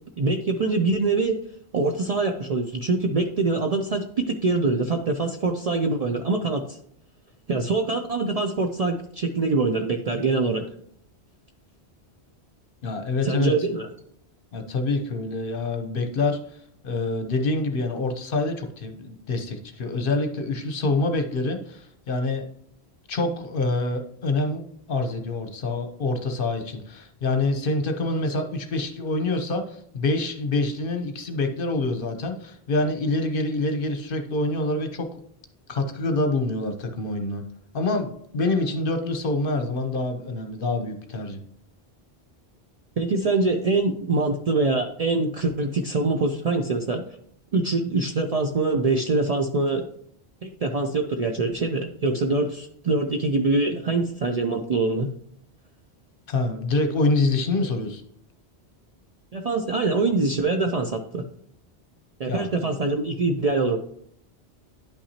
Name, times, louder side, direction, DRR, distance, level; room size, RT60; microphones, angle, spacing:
voice 1, 0.2-1.4 1.7-6.6 7.5-10.7 13.2-13.9 43.0-47.0 47.5-49.9 50.4-55.1 59.3-61.2 62.2-63.8, right 3 dB, 50° right, 4 dB, 0.5 m, -24 dB
voice 2, 12.8-13.5 14.5-16.4 16.8-22.5 23.1-24.6 24.9-35.1 35.7-37.4 37.7-41.4 56.3-58.0 62.3-62.5, left 2 dB, 55° left, 6 dB, 0.9 m, -26 dB
10.5 x 5.7 x 2.8 m, 0.67 s
omnidirectional pair, 1.1 m